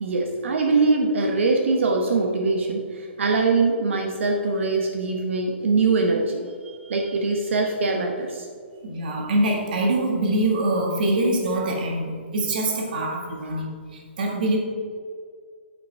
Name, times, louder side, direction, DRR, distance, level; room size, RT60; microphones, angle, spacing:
voice 1, 0.0-8.5, right 3 dB, 75° right, 2 dB, 1.0 m, -23 dB
voice 2, 8.8-14.6, right 1 dB, 45° right, 1 dB, 1.6 m, -24 dB
8.8 x 5.3 x 4.5 m, 2.1 s
hypercardioid pair, 170°, 7 cm